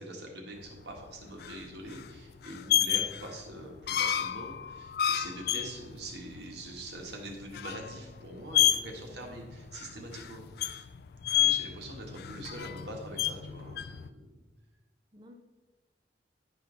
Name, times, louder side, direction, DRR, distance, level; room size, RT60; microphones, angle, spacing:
voice 1, 0.0-10.8 11.4-14.3, right 1 dB, 70° right, 0 dB, 1.7 m, -44 dB
sound 1, 0.7-14.1, left 11 dB, 60° left, 0.4 m, -31 dB
voice 2, 9.1-9.6 15.1-15.3, equal, 25° right, 3 dB, 0.6 m, -55 dB
10.5 x 5.3 x 4.0 m, 1.2 s
head